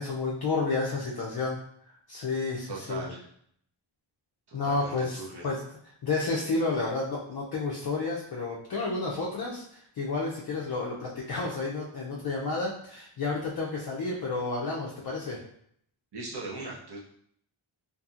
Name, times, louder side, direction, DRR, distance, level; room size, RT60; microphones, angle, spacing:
voice 1, 0.0-1.6 1.9-3.0 4.5-5.6 6.0-15.4, left 3 dB, 50° left, -3 dB, 0.5 m, -31 dB
voice 2, 2.7-3.3 4.5-5.5 16.1-17.0, right 3 dB, 50° right, -3 dB, 0.8 m, -39 dB
2.7 x 2.5 x 2.4 m, 0.67 s
wide cardioid pair, 115°, 50 cm